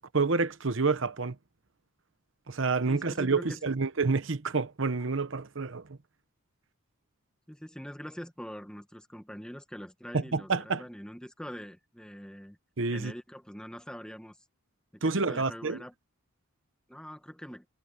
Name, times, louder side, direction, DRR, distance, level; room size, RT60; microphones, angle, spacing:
voice 1, 0.1-1.3 2.5-5.8 10.1-10.8 12.8-13.1 15.0-15.8, right 4 dB, 60° right, 0.9 m, -28 dB
voice 2, 2.8-3.6 7.5-12.6 12.9-14.4 14.9-15.9 16.9-17.6, equal, 5° left, 1.3 m, -43 dB
head